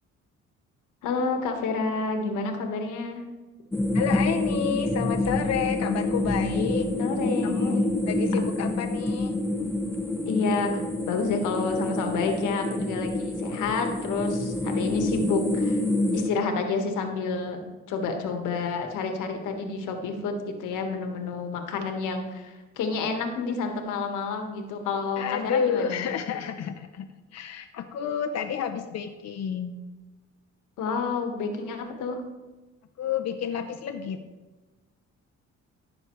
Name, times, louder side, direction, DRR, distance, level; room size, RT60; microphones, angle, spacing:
voice 1, 1.0-3.2 7.0-7.8 10.2-15.8 16.1-17.6 17.9-26.1 30.8-32.2, left 4 dB, 85° left, 4 dB, 1.5 m, -29 dB
sound 1, 3.7-16.3, left 2 dB, 10° left, 1.0 m, -27 dB
voice 2, 3.9-6.9 7.4-7.7 8.1-9.3 25.2-29.8 33.0-34.2, left 7 dB, 55° left, 4 dB, 0.7 m, -30 dB
15.0 x 6.4 x 3.1 m, 1.2 s
cardioid pair, 90°, 30 cm